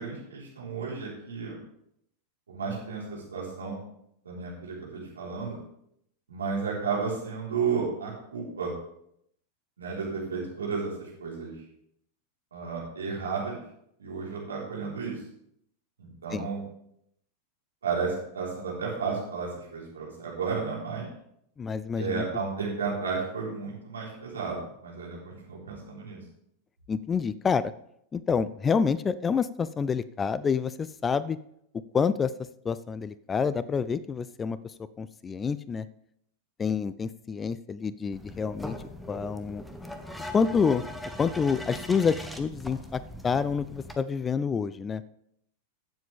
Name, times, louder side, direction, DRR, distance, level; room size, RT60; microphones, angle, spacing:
voice 1, 0.0-1.6 2.5-3.8 4.2-5.6 6.3-8.7 9.8-11.5 12.5-13.6 14.0-15.2 16.0-16.6 17.8-21.1 22.0-26.2, right 5 dB, 70° right, -4 dB, 4.1 m, -33 dB
voice 2, 21.6-22.2 26.9-27.7 28.1-31.4 31.9-32.3 32.7-34.6 35.0-35.9 36.6-38.8 39.1-39.6 40.3-40.8 41.2-45.0, left 6 dB, 20° left, 17 dB, 0.3 m, -28 dB
sound 1, 38.1-44.0, left 1 dB, 5° left, 1.0 m, -40 dB
15.0 x 7.5 x 3.5 m, 0.73 s
figure-of-eight pair, 90°, 0 cm